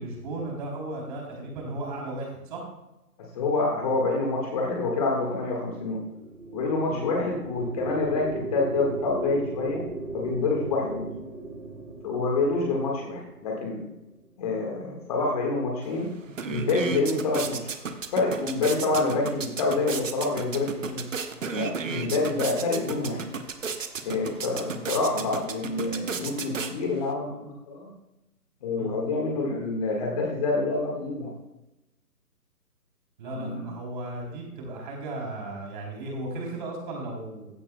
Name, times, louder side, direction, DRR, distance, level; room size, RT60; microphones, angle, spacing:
voice 1, 0.0-2.6 6.9-7.1 16.8-17.0 21.8-22.0 28.8-28.9 33.2-37.5, right 2 dB, 30° right, -1 dB, 3.3 m, -35 dB
voice 2, 3.3-6.0 6.5-9.8 10.1-11.1 12.0-13.9 14.4-16.1 16.5-17.6 18.1-21.0 21.5-23.2 24.0-27.9 28.6-31.3 33.3-33.7, left 3 dB, 25° left, -1 dB, 1.6 m, -27 dB
sound 1, 6.0-14.4, right 2 dB, 85° right, 3.5 m, -38 dB
sound 2, 15.8-15.9 16.2-27.1, right 5 dB, 55° right, 1.1 m, -34 dB
15.5 x 11.0 x 2.2 m, 0.95 s
figure-of-eight pair, 145°, 47 cm